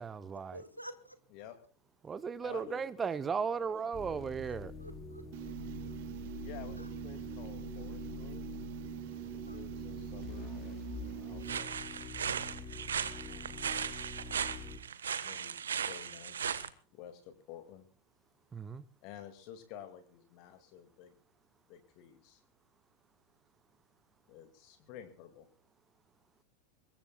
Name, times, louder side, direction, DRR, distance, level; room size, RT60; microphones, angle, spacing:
voice 1, 0.0-0.6 2.0-4.7 18.5-18.8, right 6 dB, 20° right, 0.8 m, -36 dB
voice 2, 0.5-1.2 4.4-5.5 6.8-6.9 7.6-7.7 9.1-9.6, equal, 90° right, 2.0 m, -51 dB
voice 3, 2.4-3.1 3.5-4.1 6.4-8.5 9.4-10.8 11.0-11.8 13.3-13.9 15.2-16.7 16.9-17.9 19.0-21.1 21.7-22.4 24.3-25.5, left 10 dB, 45° left, 2.2 m, -52 dB
sound 1, 3.9-14.8, left 4 dB, 25° left, 4.4 m, -45 dB
sound 2, 5.3-11.6, right 16 dB, 50° right, 1.0 m, -44 dB
sound 3, 11.4-16.7, right 7 dB, 65° right, 1.2 m, -37 dB
24.5 x 21.5 x 2.3 m
figure-of-eight pair, 90°, 0 cm